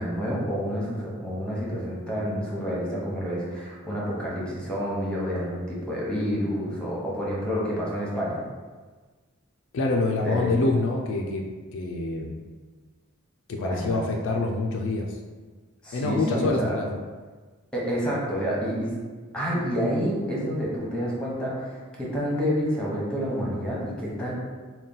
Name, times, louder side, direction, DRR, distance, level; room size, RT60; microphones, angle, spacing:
voice 1, 0.0-8.5 10.2-10.6 13.6-14.0 15.8-16.8 17.7-18.9 19.3-24.3, equal, 5° left, -5 dB, 0.9 m, -29 dB
voice 2, 9.7-11.5 11.7-12.4 13.5-15.2 15.9-16.9, left 2 dB, 60° left, 1 dB, 0.4 m, -26 dB
3.9 x 2.2 x 3.8 m, 1.4 s
head